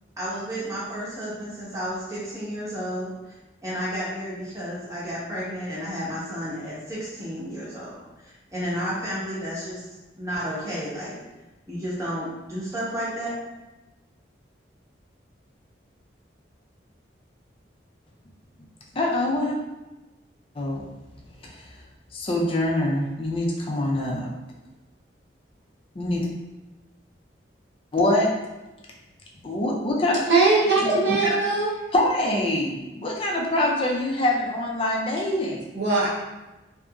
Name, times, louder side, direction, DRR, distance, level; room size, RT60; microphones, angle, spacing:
voice 1, 0.2-3.1 3.6-9.8 10.2-11.2 11.7-13.3, equal, 15° right, -8 dB, 0.8 m, -32 dB
voice 2, 18.9-19.6 20.6-20.8 21.4-21.7 22.1-24.3 26.0-26.3 27.9-28.3 29.4-30.2 30.8-31.2 31.9-35.6, left 1 dB, 30° left, -2 dB, 0.4 m, -24 dB
voice 3, 30.3-31.7 35.7-36.1, right 3 dB, 65° right, -6 dB, 0.7 m, -20 dB
2.8 x 2.5 x 2.3 m, 1.1 s
head